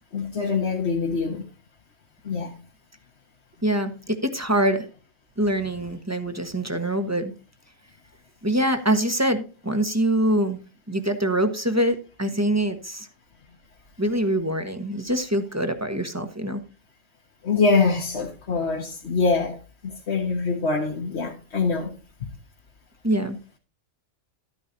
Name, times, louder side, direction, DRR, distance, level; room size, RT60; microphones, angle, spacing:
voice 1, 0.1-1.5 2.2-2.6 17.4-19.6 19.8-22.3, left 4 dB, 60° left, 1.6 m, -24 dB
voice 2, 3.6-4.9 5.4-7.3 8.4-10.6 10.9-13.1 14.0-16.6 23.0-23.4, right 1 dB, 15° right, 1.2 m, -24 dB
13.0 x 9.6 x 2.8 m
omnidirectional pair, 1.3 m